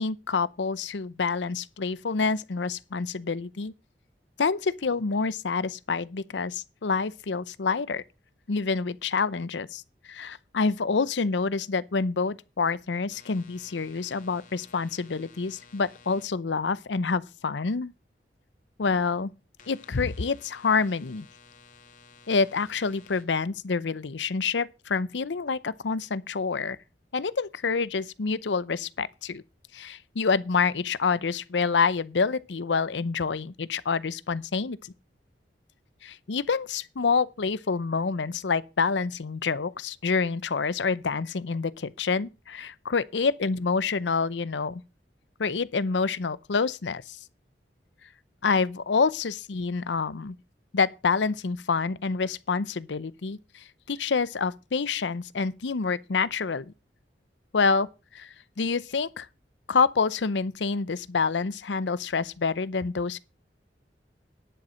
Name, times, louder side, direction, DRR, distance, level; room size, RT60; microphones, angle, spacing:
voice 1, 0.0-3.7 4.4-8.0 8.5-17.9 18.8-19.3 19.7-21.3 22.3-26.8 27.1-29.4 29.7-34.8 36.0-44.8 45.4-47.2 48.4-50.3 50.7-56.7 57.5-57.9 58.1-59.3 59.7-63.2, left 4 dB, 90° left, 0.7 m, -27 dB
sound 1, 13.1-16.2 19.6-23.2, left 5 dB, 50° left, 2.1 m, -54 dB
10.5 x 7.3 x 6.3 m
head